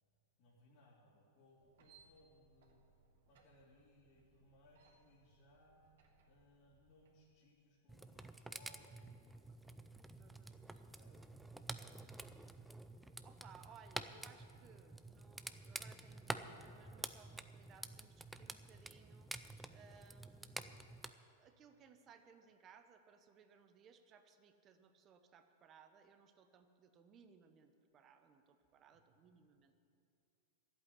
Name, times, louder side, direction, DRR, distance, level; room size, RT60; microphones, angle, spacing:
voice 1, 0.4-2.8 3.3-5.8 6.2-11.2 28.9-29.0, left 1 dB, 50° left, -7 dB, 3.2 m, -68 dB
sound 1, 1.6-7.2, right 5 dB, 75° right, 2.2 m, -70 dB
sound 2, 7.9-21.1, right 2 dB, 5° right, 0.5 m, -50 dB
voice 2, 10.1-11.2 11.8-12.1 13.2-19.3 19.7-29.7, right 6 dB, 30° right, 8 dB, 1.0 m, -64 dB
12.0 x 8.3 x 9.8 m, 2.6 s
hypercardioid pair, 135°, 0 cm